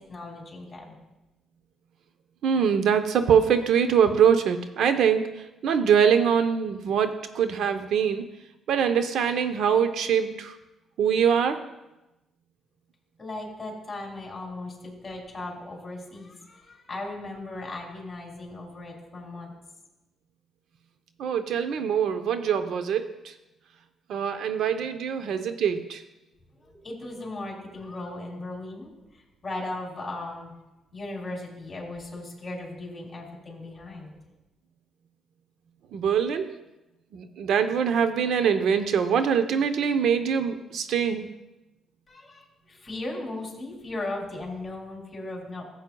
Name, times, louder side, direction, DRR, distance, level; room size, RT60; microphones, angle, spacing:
voice 1, 0.1-0.9 13.2-19.5 26.5-28.9 29.4-30.5 30.9-34.2 42.1-45.6, left 2 dB, 25° left, -1 dB, 3.2 m, -37 dB
voice 2, 2.4-8.3 8.7-10.5 11.0-11.6 21.2-23.3 24.1-26.0 35.9-36.6 37.1-41.3, right 7 dB, 75° right, 9 dB, 0.7 m, -23 dB
14.5 x 8.0 x 2.3 m, 0.98 s
cardioid pair, 90°, 0 cm